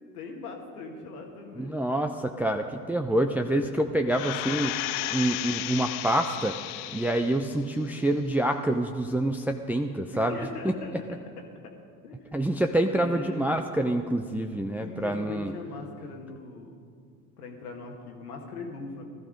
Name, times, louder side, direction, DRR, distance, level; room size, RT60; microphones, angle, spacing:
voice 1, 0.1-2.1 3.5-3.7 10.1-10.9 12.0-12.3 12.9-13.6 14.8-16.7 17.4-19.0, left 3 dB, 85° left, 2 dB, 1.9 m, -40 dB
voice 2, 1.5-4.8 5.1-6.6 6.9-10.4 10.6-10.7 12.3-15.5, right 1 dB, 5° right, 4 dB, 0.6 m, -27 dB
sound 1, 4.1-7.5 7.9-8.0, left 17 dB, 70° left, 0.6 m, -33 dB
16.0 x 12.5 x 5.2 m, 2.2 s
hypercardioid pair, 65°, 44 cm